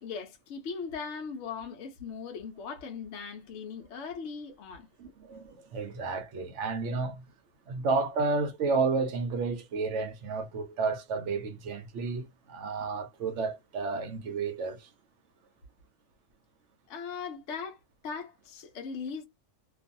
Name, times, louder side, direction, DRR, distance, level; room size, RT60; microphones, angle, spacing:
voice 1, 0.0-4.9 16.9-19.3, left 5 dB, 60° left, 0.9 m, -39 dB
voice 2, 5.0-7.2 7.7-14.9, right 4 dB, 65° right, 0.8 m, -31 dB
2.5 x 2.3 x 2.5 m
omnidirectional pair, 1.6 m